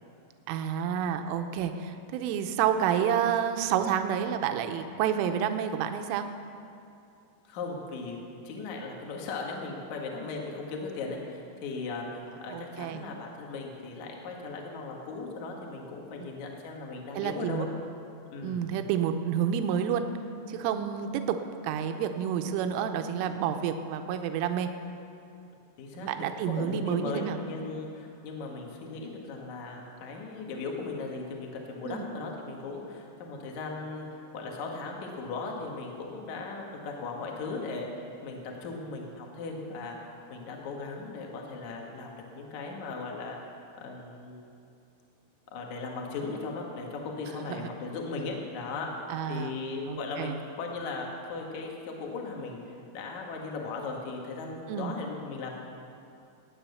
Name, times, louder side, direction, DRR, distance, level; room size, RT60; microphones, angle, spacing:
voice 1, 0.5-6.3 12.5-13.0 16.2-16.3 17.2-17.7 18.4-20.1 20.5-21.4 21.6-24.7 25.9-27.4 31.9-32.1 47.6-47.7 49.1-49.6 49.9-50.4 54.7-55.0, right 8 dB, 85° right, 7 dB, 3.3 m, -29 dB
voice 2, 7.5-8.2 8.4-17.7 18.3-18.7 25.8-26.1 26.4-40.0 40.3-43.4 43.8-44.4 45.5-48.9 49.3-52.6 52.9-55.6, left 3 dB, 55° left, 0 dB, 2.3 m, -37 dB
19.0 x 9.7 x 7.0 m, 2.6 s
omnidirectional pair, 5.7 m